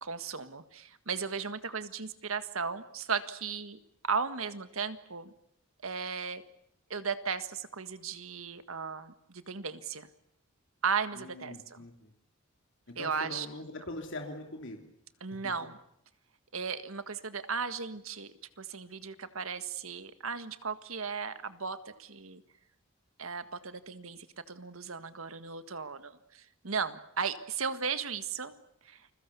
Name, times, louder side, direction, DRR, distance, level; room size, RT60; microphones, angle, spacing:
voice 1, 0.0-3.8 4.0-5.3 5.8-6.4 6.9-10.1 10.8-11.8 13.0-13.5 15.2-15.7 16.5-22.4 23.2-28.5 28.9-29.0, right 5 dB, 85° right, 11 dB, 1.7 m, -36 dB
voice 2, 11.1-12.1 12.9-14.8 15.4-15.5, left 1 dB, 65° left, 3 dB, 3.0 m, -42 dB
29.0 x 22.0 x 7.0 m, 0.77 s
head